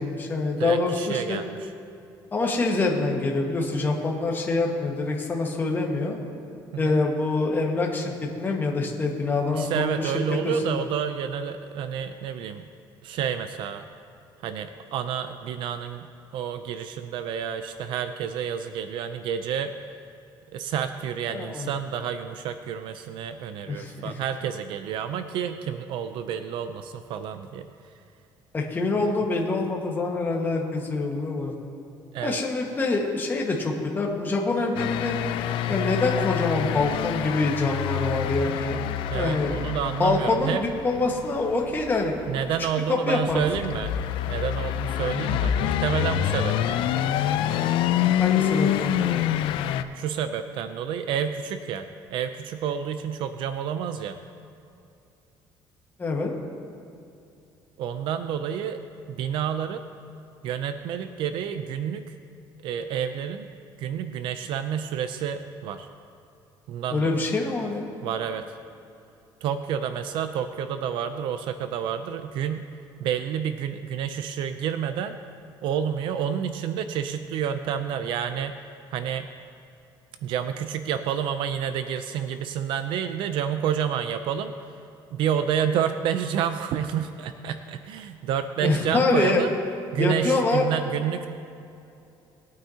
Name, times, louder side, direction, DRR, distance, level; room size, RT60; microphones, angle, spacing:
voice 1, 0.0-1.4 2.3-6.2 6.8-10.8 21.3-21.7 23.7-24.1 28.5-31.5 32.2-35.2 35.7-38.9 39.1-39.5 40.0-42.1 42.9-43.4 48.2-49.2 56.0-56.3 66.9-67.9 88.6-89.4 90.0-90.6, left 3 dB, 25° left, 0 dB, 1.6 m, -25 dB
voice 2, 0.6-1.5 6.7-7.0 9.5-12.7 13.0-13.9 14.4-19.7 20.5-27.7 29.0-29.1 32.1-32.4 39.1-40.6 42.3-44.0 44.3-47.1 49.9-54.2 57.8-58.8 59.1-59.8 60.4-62.1 62.6-63.5 63.8-65.9 66.7-67.3 68.0-68.6 69.4-72.7 73.0-75.2 75.6-78.6 78.9-79.3 80.2-84.5 85.1-89.5 89.9-91.3, right 8 dB, 70° right, 9 dB, 0.5 m, -29 dB
sound 1, 34.8-49.8, left 10 dB, 75° left, 0.5 m, -27 dB
20.5 x 9.2 x 2.9 m, 2.6 s
cardioid pair, 130°, 9 cm